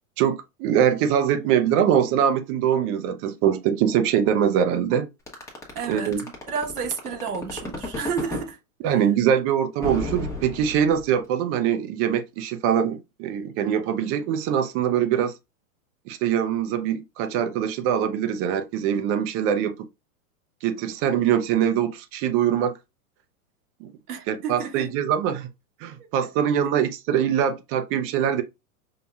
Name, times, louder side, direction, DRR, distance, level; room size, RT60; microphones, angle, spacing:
voice 1, 0.2-5.1 5.9-6.2 8.8-15.3 16.1-19.8 20.6-22.8 23.8-23.9 24.3-25.5 25.8-28.4, right 9 dB, 30° right, 0.5 m, -23 dB
sound 1, 5.3-8.5 9.8-11.2, left 2 dB, 5° left, 1.0 m, -32 dB
voice 2, 5.7-8.6 24.1-24.9 26.0-26.1, right 6 dB, 85° right, 1.2 m, -31 dB
5.4 x 2.9 x 2.3 m
hypercardioid pair, 130°, 44 cm